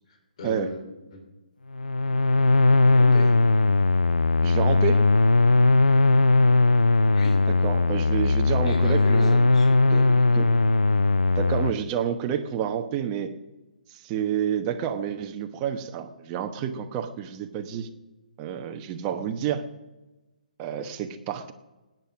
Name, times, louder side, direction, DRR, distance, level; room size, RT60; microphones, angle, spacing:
voice 1, 0.1-0.8 1.1-1.2 2.9-3.4 7.1-7.4 8.6-10.4, left 1 dB, 50° left, 4 dB, 3.2 m, -36 dB
sound 1, 1.7-11.7, left 3 dB, 90° left, 0.4 m, -19 dB
voice 2, 4.4-5.1 7.6-9.4 9.9-10.0 10.4-10.5 11.3-13.3 13.9-17.9 18.4-19.6 20.6-21.5, right 9 dB, 25° right, 6 dB, 1.1 m, -29 dB
19.5 x 9.3 x 6.0 m, 1.1 s
figure-of-eight pair, 140°, 5 cm